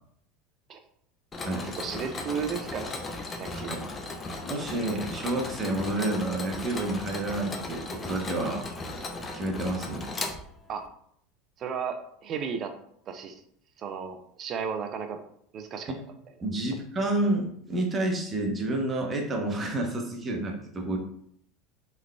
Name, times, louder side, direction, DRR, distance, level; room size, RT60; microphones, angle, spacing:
Mechanisms, 1.3-10.9, left 2 dB, 25° left, 0.5 m, -36 dB
voice 1, 1.5-3.0 3.4-3.7 4.3-4.4 10.7-10.9 11.6-12.7 13.1-13.4 13.8-15.2 15.5-15.9, right 6 dB, 45° right, 7 dB, 0.5 m, -34 dB
voice 2, 4.4-8.6 9.3-10.1 16.4-21.0, right 1 dB, 30° right, 1 dB, 0.9 m, -29 dB
3.5 x 3.2 x 2.2 m, 0.67 s
hypercardioid pair, 85°, 0 cm